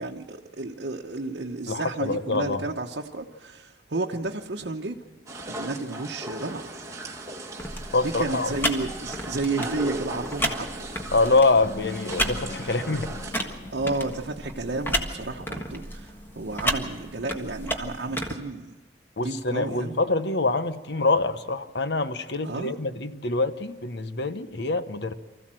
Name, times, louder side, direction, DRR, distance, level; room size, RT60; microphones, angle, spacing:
voice 1, 0.0-5.0 5.5-6.6 8.0-10.7 13.7-18.7 19.2-20.0 22.4-22.7, right 3 dB, 75° right, 0 dB, 1.0 m, -32 dB
voice 2, 1.7-2.6 7.9-8.5 11.1-13.1 19.2-25.1, left 3 dB, 75° left, 11 dB, 1.0 m, -25 dB
sound 1, 5.3-13.4, right 1 dB, 20° right, 1.8 m, -37 dB
sound 2, 7.6-18.3, equal, 10° left, 1.5 m, -33 dB
sound 3, 11.6-15.2, left 2 dB, 45° left, 1.9 m, -42 dB
24.5 x 15.0 x 7.6 m, 1.3 s
head